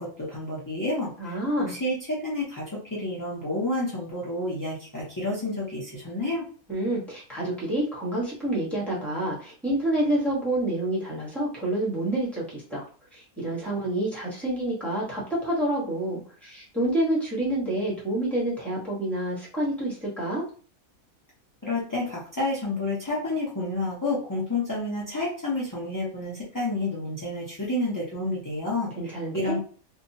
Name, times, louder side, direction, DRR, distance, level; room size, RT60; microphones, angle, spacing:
voice 1, 0.0-6.5 21.6-29.6, left 2 dB, 30° left, -7 dB, 0.3 m, -30 dB
voice 2, 1.2-1.7 6.7-12.9 13.1-20.4 29.0-29.6, right 1 dB, ahead, -6 dB, 0.8 m, -28 dB
2.8 x 2.3 x 2.6 m, 0.41 s
omnidirectional pair, 1.5 m